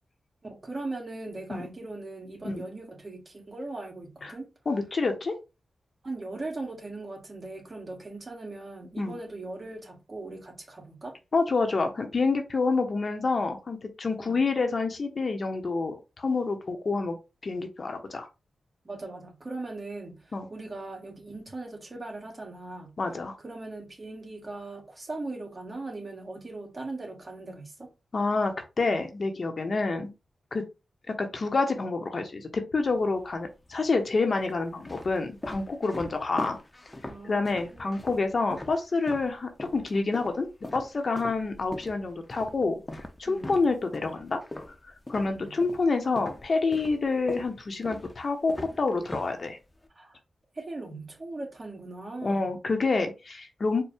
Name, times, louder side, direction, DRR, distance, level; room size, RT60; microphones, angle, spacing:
voice 1, 0.4-4.5 6.0-11.2 14.2-14.4 18.8-22.9 23.4-27.9 37.1-38.0 43.3-43.5 45.2-45.5 49.9-50.2 50.5-52.5, right 2 dB, 40° right, 1.5 m, -39 dB
voice 2, 4.7-5.3 9.0-9.2 11.3-17.1 17.4-18.3 20.3-20.5 23.0-23.4 28.1-30.1 30.5-30.6 31.1-36.6 37.2-40.5 40.7-42.8 43.2-44.4 45.1-49.6 52.2-53.8, left 3 dB, 55° left, 0.8 m, -28 dB
sound 1, 32.8-33.5 34.2-39.3 39.6-45.9 46.2-49.9, left 1 dB, 20° left, 0.7 m, -41 dB
4.5 x 2.2 x 3.4 m
cardioid pair, 55°, 0 cm